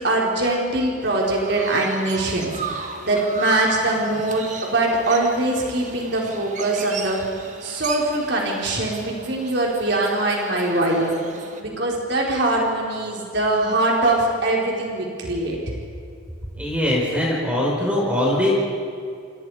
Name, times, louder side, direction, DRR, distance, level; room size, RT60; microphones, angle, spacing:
voice 1, 0.0-7.2 7.6-11.2 11.6-15.6, right 2 dB, 55° right, -2 dB, 4.7 m, -22 dB
Chirp tweet, 1.0-11.6, right 4 dB, 35° right, 2.0 m, -36 dB
voice 2, 16.6-18.5, left 1 dB, 5° right, -4 dB, 5.3 m, -21 dB
29.5 x 27.5 x 5.1 m, 2.4 s
head